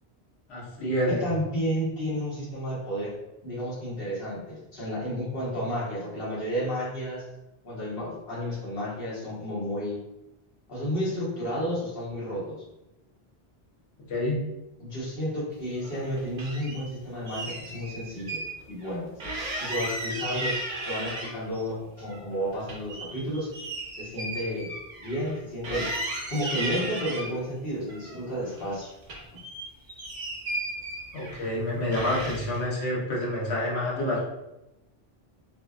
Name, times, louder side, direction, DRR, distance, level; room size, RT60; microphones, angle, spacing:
voice 1, 0.5-1.3 14.0-14.5 31.1-34.2, left 1 dB, 80° left, -4 dB, 1.1 m, -28 dB
voice 2, 1.2-3.1 3.4-7.2 7.6-10.0 10.7-12.6 14.8-18.4 18.7-19.1 19.6-23.5 24.0-24.7 25.0-25.9 26.3-28.9, equal, 65° left, -8 dB, 1.2 m, -31 dB
sound 1, 15.8-16.8 17.3-18.5 18.8-18.9 19.2-21.6 22.0-25.4 25.6-27.3 27.9-28.8 29.0-31.5 31.9-32.6, right 1 dB, 55° right, 0.7 m, -35 dB
2.7 x 2.1 x 2.3 m, 0.93 s
omnidirectional pair, 1.1 m